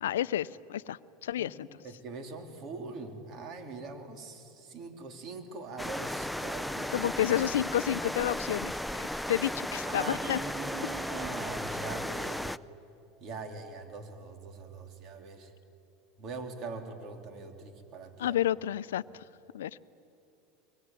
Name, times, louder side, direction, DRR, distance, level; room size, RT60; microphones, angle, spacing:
voice 1, 0.0-1.7 6.9-8.7 9.3-10.4 18.2-19.2 19.5-19.8, left 12 dB, 85° left, 17 dB, 0.5 m, -30 dB
voice 2, 1.8-7.1 9.8-12.5 13.2-15.5 16.2-18.4, right 4 dB, 50° right, 5 dB, 3.3 m, -42 dB
sound 1, 5.8-12.6, left 1 dB, ahead, 0.5 m, -35 dB
23.0 x 23.0 x 9.3 m, 2.8 s
hypercardioid pair, 100°, 0 cm